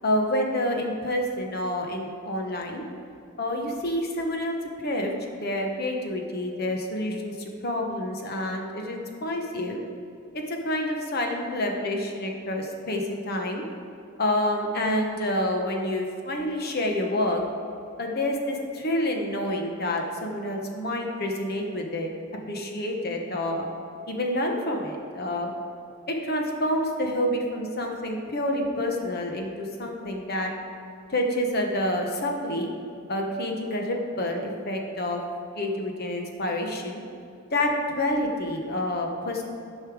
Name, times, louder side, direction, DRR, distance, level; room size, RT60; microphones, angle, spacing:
voice 1, 0.0-2.8 3.4-5.1 5.4-9.8 10.5-13.6 14.2-17.4 18.0-22.1 22.5-23.7 24.1-25.5 26.1-30.5 31.1-32.7 33.1-35.2 35.5-37.0 37.5-39.4, left 1 dB, 50° left, 2 dB, 1.1 m, -28 dB
10.5 x 5.5 x 4.8 m, 2.6 s
head